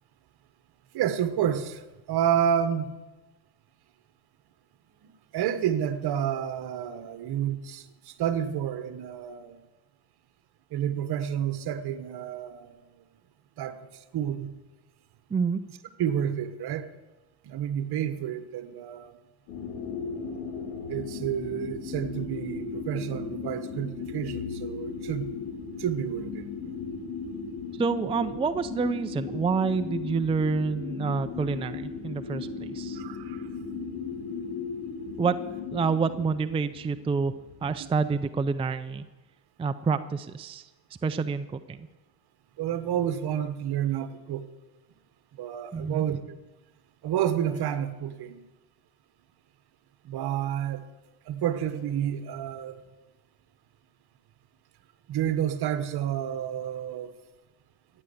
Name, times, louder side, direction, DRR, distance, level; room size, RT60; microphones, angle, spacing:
voice 1, 0.9-2.9 5.0-9.6 10.7-12.9 13.6-14.6 16.0-16.9 17.4-19.2 20.9-25.3 25.8-26.8 33.0-33.5 37.8-37.9 42.6-44.4 45.3-46.4 47.0-48.4 50.0-50.8 51.3-52.8 55.1-57.1, right 9 dB, 55° right, 1.3 m, -30 dB
voice 2, 15.3-15.6 27.8-33.0 35.2-35.4 35.7-37.3 37.6-39.0 39.6-40.7 41.0-41.9 45.7-46.0, right 5 dB, 15° right, 0.5 m, -28 dB
sound 1, 19.5-37.6, left 5 dB, 80° left, 3.7 m, -37 dB
15.0 x 9.1 x 7.1 m
supercardioid pair, 100°, 45 cm